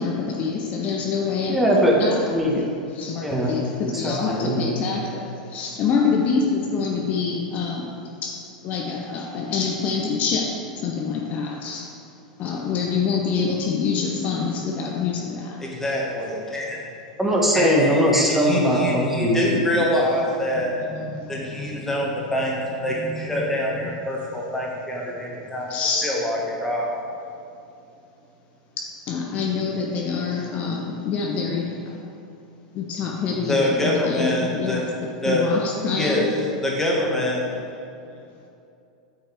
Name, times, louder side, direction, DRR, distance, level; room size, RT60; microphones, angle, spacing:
voice 1, 0.0-1.6 2.0-2.2 2.6-2.7 3.0-11.9 12.4-15.7 19.5-19.6 20.5-22.1 22.9-23.5 23.8-24.0 25.7-26.2 29.1-32.0 32.7-34.9 35.3-36.2, left 5 dB, 40° left, 0 dB, 0.7 m, -26 dB
voice 2, 1.5-2.5 3.2-3.5 3.8-4.8 17.2-19.6, equal, 5° right, -3 dB, 1.3 m, -20 dB
voice 3, 15.6-16.8 17.5-20.8 21.3-22.6 22.8-25.7 26.0-26.9 33.5-34.8 35.1-35.5 35.9-37.4, left 1 dB, 10° left, -3 dB, 1.7 m, -25 dB
8.5 x 5.6 x 3.5 m, 2.6 s
hypercardioid pair, 100°, 4 cm